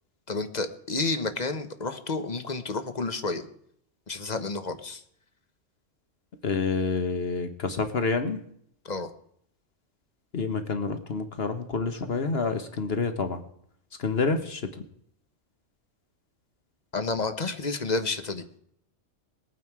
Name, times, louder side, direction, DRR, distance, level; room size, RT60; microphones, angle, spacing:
voice 1, 0.3-3.5 4.1-5.0 8.8-9.1 16.9-18.4, left 3 dB, 35° left, 9 dB, 1.1 m, -30 dB
voice 2, 6.4-8.4 10.3-13.4 14.0-14.7, left 4 dB, 55° left, 8 dB, 1.3 m, -28 dB
20.0 x 9.2 x 4.7 m, 0.68 s
omnidirectional pair, 1.3 m